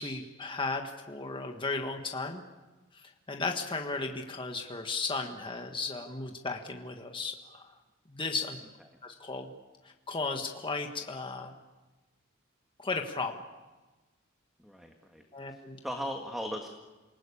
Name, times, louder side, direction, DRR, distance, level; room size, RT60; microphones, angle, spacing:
voice 1, 0.0-2.4 2.9-7.7 8.1-8.6 9.0-9.5 9.8-11.5 12.8-13.4 15.3-15.8, left 3 dB, 25° left, 3 dB, 1.5 m, -35 dB
voice 2, 14.6-15.2 15.5-16.7, equal, ahead, 3 dB, 1.7 m, -38 dB
28.0 x 19.0 x 8.6 m, 1.2 s
head